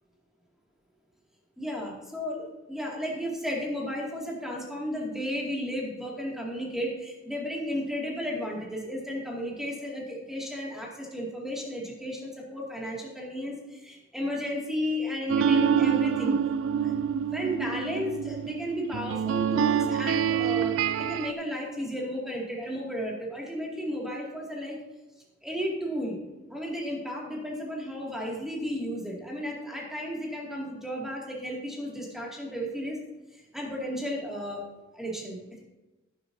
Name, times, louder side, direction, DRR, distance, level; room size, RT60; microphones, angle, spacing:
voice 1, 1.6-16.4 16.7-24.8 25.4-26.2 26.5-33.0 33.3-34.6 34.9-35.6, equal, ahead, -3 dB, 2.2 m, -34 dB
sound 1, 15.3-21.3, right 8 dB, 70° right, 0.3 m, -26 dB
12.0 x 10.5 x 2.7 m, 1.1 s
head